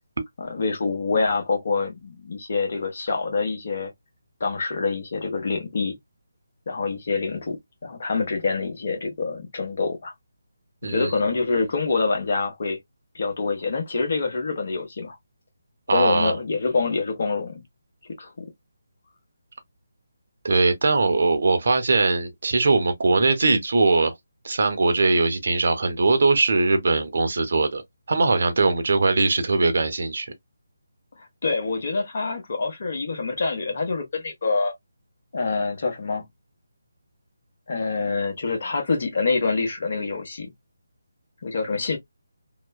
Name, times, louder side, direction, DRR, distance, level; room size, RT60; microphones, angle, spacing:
voice 1, 0.4-3.9 4.4-6.0 6.7-10.1 10.8-12.8 13.1-15.2 15.9-17.6 18.0-18.5 31.4-34.7 35.3-36.3 37.7-40.5 41.4-42.0, left 4 dB, 50° left, 1.1 m, -26 dB
voice 2, 10.8-11.1 15.9-16.4 20.4-24.1 24.4-27.8 28.1-30.3, right 3 dB, 60° right, 0.8 m, -21 dB
3.0 x 2.1 x 2.2 m
figure-of-eight pair, 155°, 0 cm